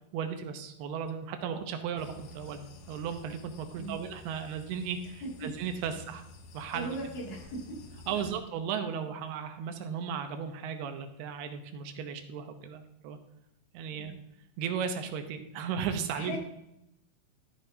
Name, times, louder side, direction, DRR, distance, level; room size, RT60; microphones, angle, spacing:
voice 1, 0.1-2.6 2.9-6.2 6.5-6.9 8.1-13.2 13.7-14.1 14.6-16.4, right 7 dB, 90° right, 7 dB, 3.0 m, -35 dB
sound 1, 2.0-8.4, left 3 dB, 70° left, 2.6 m, -51 dB
voice 2, 6.7-7.8 8.1-8.4 13.9-14.2 16.1-16.4, right 1 dB, 50° left, -3 dB, 3.8 m, -39 dB
13.5 x 8.8 x 2.8 m, 0.82 s
omnidirectional pair, 4.4 m